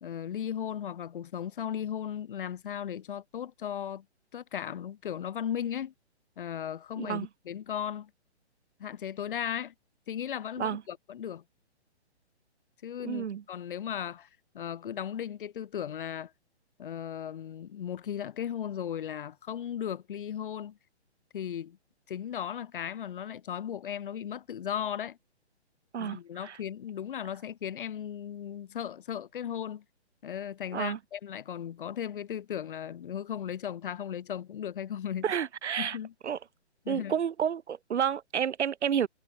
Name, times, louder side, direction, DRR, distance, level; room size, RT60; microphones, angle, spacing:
voice 1, 0.0-4.0 4.3-5.9 6.4-8.1 8.8-9.7 10.1-11.4 12.8-14.3 14.5-16.3 16.8-20.8 21.3-21.8 22.1-25.2 26.0-29.8 30.2-35.2 35.8-36.1 36.8-37.1, left 9 dB, 50° left, 1.2 m, -36 dB
voice 2, 7.0-7.3 10.6-10.8 13.0-13.4 25.9-26.6 30.7-31.0 35.2-36.0 36.2-36.4 36.9-39.1, right 8 dB, 80° right, 1.1 m, -30 dB
hypercardioid pair, 160°, 34 cm